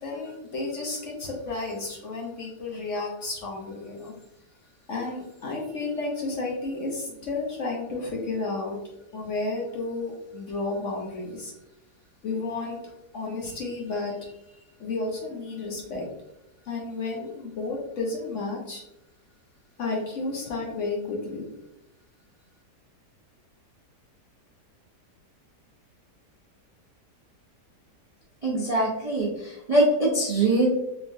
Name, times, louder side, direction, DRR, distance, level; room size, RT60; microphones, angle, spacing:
voice 1, 0.0-4.2 4.9-8.8 9.1-11.5 12.2-16.1 16.6-18.8 19.8-21.4, left 3 dB, 60° left, -2 dB, 0.9 m, -32 dB
voice 2, 28.4-30.7, right 2 dB, 50° right, -5 dB, 0.4 m, -23 dB
3.6 x 3.5 x 2.6 m, 0.91 s
omnidirectional pair, 1.8 m